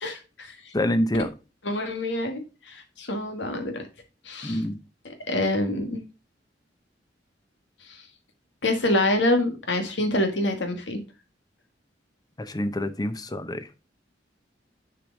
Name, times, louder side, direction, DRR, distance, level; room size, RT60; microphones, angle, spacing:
voice 1, 0.0-0.7 1.6-3.8 4.2-4.6 5.0-6.0 7.9-8.0 8.6-11.0, left 1 dB, 85° left, 1.7 m, -26 dB
voice 2, 0.7-1.3 4.4-4.8 12.4-13.7, left 1 dB, 20° left, 0.7 m, -26 dB
6.7 x 4.8 x 3.9 m
head